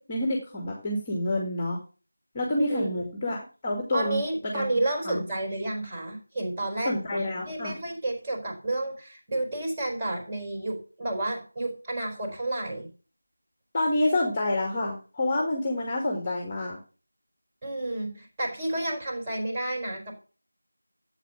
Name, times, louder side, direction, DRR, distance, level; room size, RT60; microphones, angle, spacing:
voice 1, 0.0-1.8 2.3-4.2 4.5-4.7 5.0-5.2 6.8-7.8 13.7-16.8, left 1 dB, 15° left, 2 dB, 2.1 m, -28 dB
voice 2, 2.6-3.1 3.9-12.9 17.6-20.1, right 2 dB, 15° right, 0 dB, 4.4 m, -31 dB
13.0 x 8.7 x 6.0 m, 0.39 s
figure-of-eight pair, 170°, 0 cm